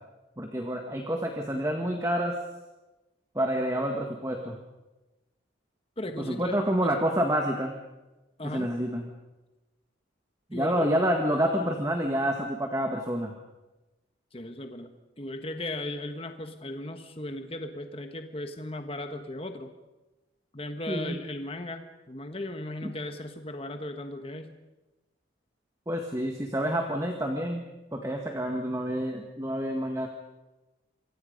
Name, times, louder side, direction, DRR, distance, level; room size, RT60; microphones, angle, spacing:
voice 1, 0.4-2.4 3.3-4.6 6.3-7.7 8.4-9.1 10.5-13.3 20.9-21.2 22.8-22.9 25.9-27.6 27.9-30.1, equal, 15° right, 3 dB, 1.8 m, -28 dB
voice 2, 6.0-6.9 8.4-8.7 10.5-10.9 14.3-19.7 20.5-24.6, left 1 dB, 30° left, 6 dB, 1.5 m, -37 dB
27.0 x 24.5 x 5.4 m, 1.1 s
head